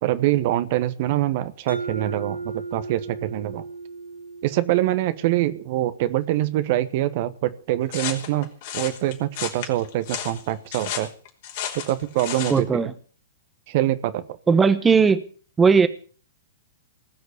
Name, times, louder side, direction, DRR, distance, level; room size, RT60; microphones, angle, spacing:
voice 1, 0.0-3.6 4.4-8.5 8.7-11.1 11.7-12.7 13.7-14.4, right 14 dB, 50° right, 12 dB, 1.2 m, -24 dB
Mallet percussion, 1.7-6.2, right 4 dB, 75° right, 2.4 m, -36 dB
sound 1, 7.9-12.6, left 9 dB, 50° left, 3.5 m, -33 dB
voice 2, 12.5-12.9 14.5-15.2 15.6-15.9, right 5 dB, 15° right, 12 dB, 1.1 m, -17 dB
19.5 x 6.5 x 8.2 m, 0.42 s
figure-of-eight pair, 110°, 0 cm